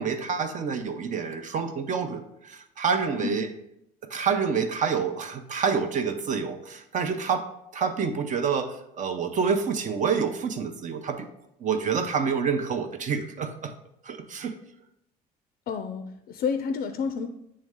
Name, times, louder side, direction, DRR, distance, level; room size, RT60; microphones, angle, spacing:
voice 1, 0.0-3.5 4.1-7.5 7.7-11.3 11.6-13.7 14.0-14.6, right 6 dB, 45° right, 8 dB, 0.7 m, -27 dB
voice 2, 15.7-17.3, left 6 dB, 60° left, 8 dB, 0.4 m, -30 dB
8.7 x 3.2 x 3.6 m, 0.80 s
cardioid pair, 105°, 17 cm